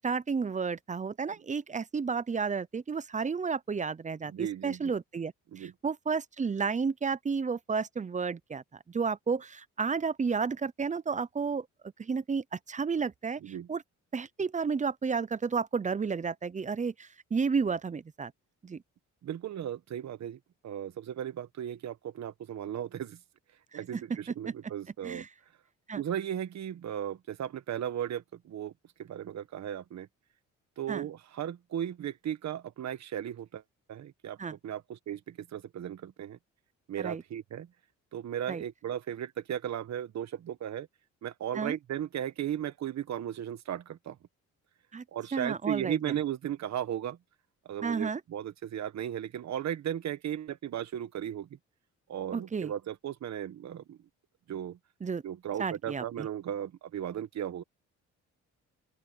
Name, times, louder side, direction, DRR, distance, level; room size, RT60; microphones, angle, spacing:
voice 1, 0.0-11.7 12.0-13.4 13.7-13.8 14.1-18.3 18.6-18.8 23.9-24.0 25.0-25.3 25.9-26.0 30.9-31.1 34.4-34.5 37.0-37.2 38.5-38.6 41.5-41.8 44.9-45.0 45.3-46.0 47.8-48.2 52.3-52.7 55.0-55.2 55.6-56.0, right 5 dB, 25° right, 0.7 m, -32 dB
voice 2, 4.3-4.9 5.5-5.7 13.4-13.7 19.2-23.2 23.7-25.2 25.9-28.7 29.0-30.1 30.8-33.6 33.9-36.4 36.9-37.7 38.1-40.9 41.2-44.2 45.1-47.2 47.6-51.6 52.1-54.0 54.5-54.8 55.2-57.6, right 10 dB, 60° right, 1.5 m, -36 dB
open air
cardioid pair, 90°, 30 cm